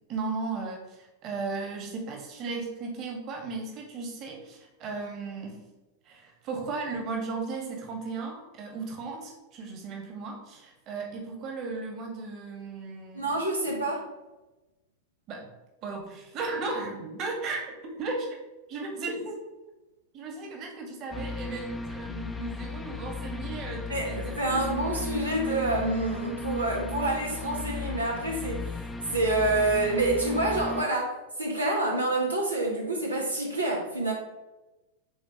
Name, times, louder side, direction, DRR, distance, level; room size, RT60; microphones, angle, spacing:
voice 1, 0.1-5.6 6.0-13.4 15.3-15.5 15.8-18.3 18.7-19.4 20.1-24.6, right 3 dB, 35° right, 2 dB, 1.6 m, -36 dB
voice 2, 13.1-14.1 23.9-28.8 29.1-34.1, right 2 dB, 80° right, -1 dB, 1.1 m, -27 dB
sound 1, 21.1-30.8, left 3 dB, 10° left, 0.4 m, -36 dB
9.7 x 4.1 x 3.0 m, 1.1 s
figure-of-eight pair, 90°, 0 cm